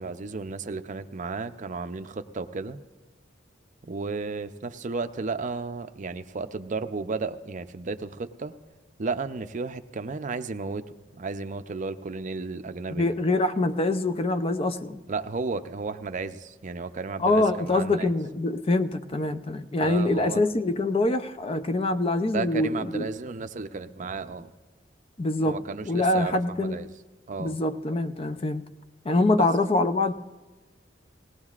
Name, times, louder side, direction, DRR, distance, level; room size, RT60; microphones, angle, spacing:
voice 1, 0.0-2.8 3.8-8.5 9.0-10.8 11.1-13.1 15.1-18.1 19.8-20.4 22.3-24.5 25.4-26.9 27.3-27.6 29.4-29.5, right 4 dB, 40° right, 9 dB, 0.5 m, -33 dB
voice 2, 13.0-15.0 17.2-23.1 25.2-25.6 25.8-26.8 27.4-28.6 29.1-30.1, left 2 dB, 30° left, 11 dB, 0.5 m, -24 dB
19.5 x 17.5 x 2.4 m, 1.3 s
head